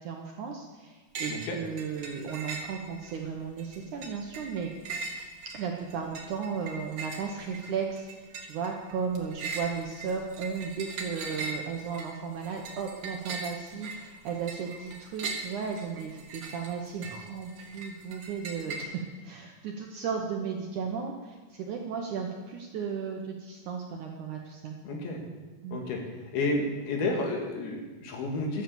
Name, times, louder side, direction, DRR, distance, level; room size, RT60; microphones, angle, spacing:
voice 1, 0.0-4.7 5.5-18.9 19.2-24.8 25.6-25.8, right 6 dB, 70° right, 1 dB, 1.9 m, -35 dB
sound 1, 1.1-1.5 1.8-3.2 3.6-18.8, right 3 dB, 55° right, 1.7 m, -40 dB
voice 2, 1.3-1.6 24.8-25.2 25.7-26.0 26.3-28.6, left 2 dB, 70° left, 1 dB, 3.8 m, -31 dB
13.0 x 9.1 x 7.0 m, 1.3 s
omnidirectional pair, 4.6 m